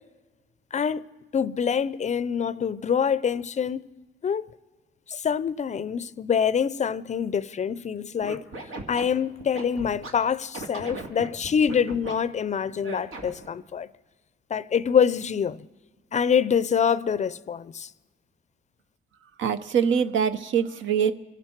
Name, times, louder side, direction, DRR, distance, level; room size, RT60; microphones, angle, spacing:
voice 1, 0.7-1.1 1.3-3.8 4.2-4.5 5.1-8.4 8.9-13.9 14.5-15.7 16.1-17.9, left 7 dB, 35° left, 0.4 m, -25 dB
Scratching (performance technique), 8.2-10.1 10.5-12.1 12.8-13.5, right 2 dB, 90° right, 2.2 m, -37 dB
voice 2, 19.4-21.1, right 7 dB, 70° right, 0.8 m, -23 dB
26.0 x 12.0 x 4.5 m
cardioid pair, 90°, 20 cm